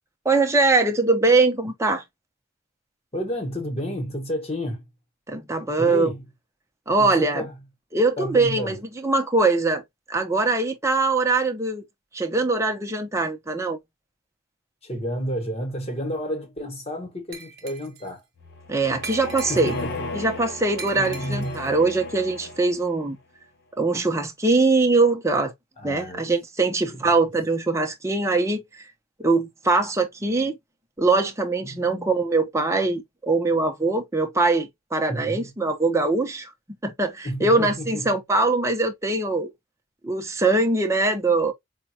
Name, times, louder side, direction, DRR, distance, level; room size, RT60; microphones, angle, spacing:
voice 1, 0.2-2.0 5.3-6.1 6.9-7.5 7.9-9.8 10.1-11.8 12.1-13.8 18.7-19.8 20.1-23.2 23.8-25.5 25.8-28.8 29.2-30.5 31.0-36.5 36.8-39.5 40.0-41.5, right 3 dB, 15° right, 0.7 m, -22 dB
voice 2, 3.1-4.8 5.8-6.2 7.0-7.5 8.2-8.8 14.8-18.2 19.5-20.1 20.9-21.7 25.8-26.3 26.9-27.0 31.6-32.1 35.1-35.5 37.2-38.1, equal, 30° left, 1.2 m, -31 dB
Glass, 17.3-18.1 19.0-20.0 20.8-21.7, right 5 dB, 50° right, 1.2 m, -40 dB
sound 1, 18.4-23.0, left 2 dB, 50° left, 0.7 m, -35 dB
5.2 x 2.3 x 2.8 m
head